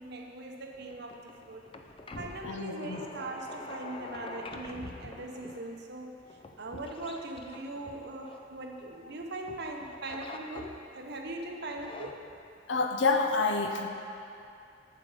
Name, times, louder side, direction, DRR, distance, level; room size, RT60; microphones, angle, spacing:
voice 1, 0.0-1.7 2.2-6.2 6.6-12.2, right 2 dB, 60° right, 2 dB, 0.9 m, -40 dB
sound 1, 0.7-9.1 9.5-11.1 11.6-12.1, left 2 dB, 30° left, 0.5 m, -46 dB
voice 2, 2.4-3.1 12.7-13.9, left 3 dB, 75° left, 4 dB, 0.7 m, -28 dB
8.1 x 7.6 x 4.9 m, 2.6 s
head